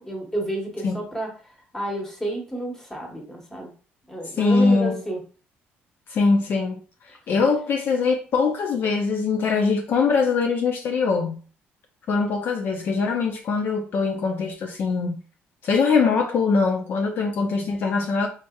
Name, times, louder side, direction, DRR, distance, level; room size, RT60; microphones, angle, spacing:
voice 1, 0.0-1.3 1.7-3.7 4.1-5.2, right 1 dB, 10° left, 1.1 m, -30 dB
voice 2, 4.3-5.0 6.1-11.4 12.1-15.2 15.6-18.3, left 4 dB, 55° left, 0.5 m, -22 dB
4.5 x 2.8 x 2.3 m
cardioid pair, 140°, 4 cm